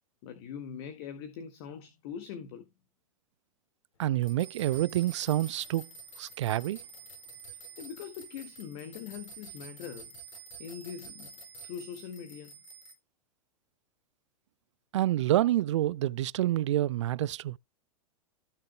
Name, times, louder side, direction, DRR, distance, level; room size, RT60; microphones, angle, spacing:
voice 1, 0.2-2.7 7.8-10.1 10.6-11.3 11.6-12.6, left 8 dB, 45° left, 1.7 m, -42 dB
voice 2, 4.0-5.9 6.2-6.8 14.9-17.6, right 14 dB, 50° right, 0.5 m, -28 dB
sound 1, 4.2-12.9, right 4 dB, 60° left, 5.4 m, -48 dB
16.5 x 6.5 x 2.3 m
figure-of-eight pair, 100°, 19 cm